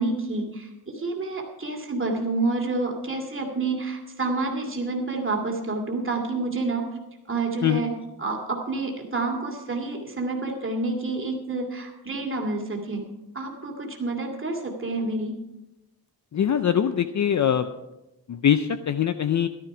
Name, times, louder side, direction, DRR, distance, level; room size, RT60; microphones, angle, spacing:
voice 1, 0.0-6.9 7.3-13.0 13.3-15.4, right 3 dB, 30° right, 1 dB, 2.4 m, -28 dB
voice 2, 16.3-17.7 18.3-19.5, left 9 dB, 45° left, 11 dB, 0.5 m, -22 dB
14.5 x 12.0 x 4.9 m, 0.97 s
wide cardioid pair, 165°, 40 cm